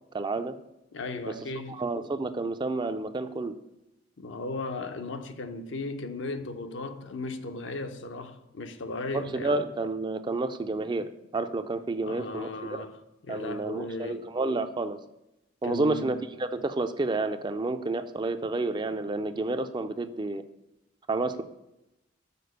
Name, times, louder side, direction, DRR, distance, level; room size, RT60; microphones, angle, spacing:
voice 1, 0.1-0.5 1.2-1.3 1.7-3.5 9.1-12.8 13.3-15.0 15.6-20.4 21.1-21.4, right 2 dB, 25° right, 0.4 m, -30 dB
voice 2, 0.9-1.8 4.2-9.5 12.0-13.0 13.2-14.3 15.6-16.2, left 2 dB, 75° left, 0.7 m, -36 dB
6.8 x 4.3 x 6.5 m
head